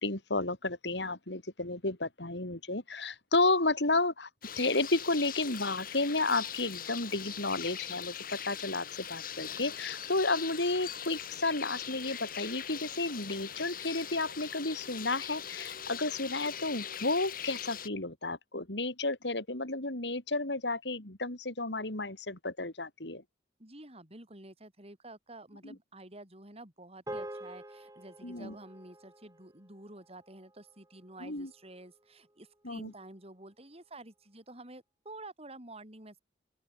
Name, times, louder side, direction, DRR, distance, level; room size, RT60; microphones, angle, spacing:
voice 1, 0.0-4.3 4.6-23.2 25.6-25.7 28.2-28.5 31.2-31.5 32.6-32.9, left 2 dB, 75° left, 3.9 m, -32 dB
sound 1, 4.4-17.9, left 9 dB, 55° left, 3.9 m, -41 dB
voice 2, 23.6-36.2, right 2 dB, 35° right, 7.6 m, -50 dB
sound 2, 27.1-31.6, right 1 dB, 20° right, 3.7 m, -47 dB
open air
head